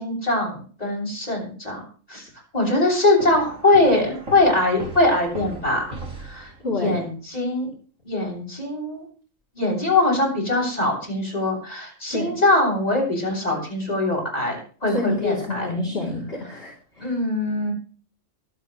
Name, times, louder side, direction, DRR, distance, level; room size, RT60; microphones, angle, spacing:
voice 1, 0.0-1.8 2.1-2.2 2.5-5.9 6.2-6.5 6.7-7.7 8.0-9.0 9.5-15.7 17.0-17.7, left 2 dB, 30° left, -1 dB, 7.3 m, -22 dB
sound 1, 3.2-6.9, right 2 dB, 70° right, 3.6 m, -37 dB
voice 2, 6.6-7.0 12.1-12.4 14.9-17.1, left 2 dB, 50° left, -4 dB, 3.9 m, -28 dB
24.0 x 8.6 x 3.3 m, 0.42 s
omnidirectional pair, 1.4 m